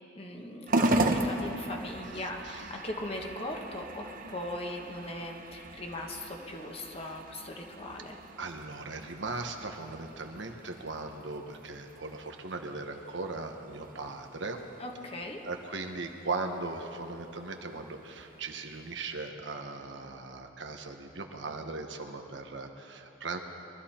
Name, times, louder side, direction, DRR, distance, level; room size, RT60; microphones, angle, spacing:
voice 1, 0.1-8.2 14.8-15.4, left 1 dB, 30° left, 1 dB, 1.4 m, -39 dB
sound 1, 0.7-19.3, right 2 dB, 50° right, 0.9 m, -37 dB
voice 2, 2.2-2.6 8.4-14.6 15.4-23.4, right 3 dB, 70° right, 4 dB, 1.2 m, -38 dB
23.0 x 13.0 x 4.4 m, 3.0 s
head